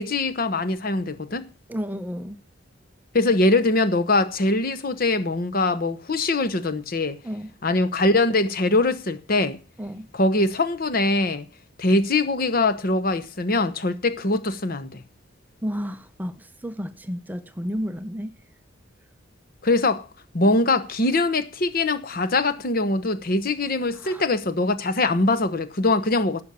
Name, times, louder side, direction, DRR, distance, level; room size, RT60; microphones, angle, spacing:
voice 1, 0.0-1.5 3.1-7.2 7.6-9.6 10.1-11.5 11.8-15.0 19.6-20.0 20.3-26.4, left 2 dB, 50° left, 0.9 m, -22 dB
voice 2, 1.7-2.4 7.2-7.5 9.8-10.1 15.6-18.3 23.9-24.2, equal, 10° right, 0.6 m, -32 dB
11.5 x 7.0 x 6.9 m
head